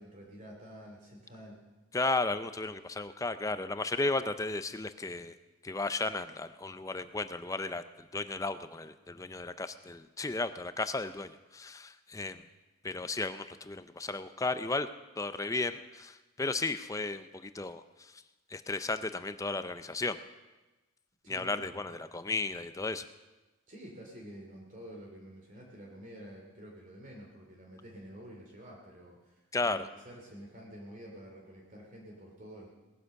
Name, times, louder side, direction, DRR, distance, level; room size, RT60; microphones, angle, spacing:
voice 1, 0.0-1.6 21.2-21.8 23.7-29.5 29.7-32.7, equal, 40° right, -1 dB, 2.7 m, -49 dB
voice 2, 1.9-5.3 5.6-12.5 12.8-14.9 15.2-18.2 18.5-20.2 21.3-23.1 29.5-29.9, left 3 dB, 15° left, 11 dB, 0.5 m, -34 dB
19.0 x 9.8 x 6.5 m, 1.1 s
head